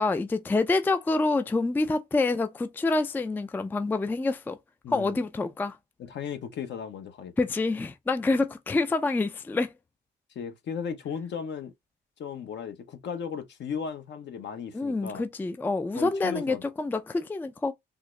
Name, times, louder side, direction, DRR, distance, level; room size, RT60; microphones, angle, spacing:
voice 1, 0.0-4.6 4.9-5.8 7.4-9.7 14.7-17.7, left 3 dB, 10° left, 0.3 m, -27 dB
voice 2, 4.8-5.2 6.0-7.3 8.3-8.4 10.3-11.7 12.2-15.2 16.0-16.6, left 6 dB, 65° left, 0.7 m, -36 dB
3.6 x 2.0 x 3.1 m
cardioid pair, 90°, 20 cm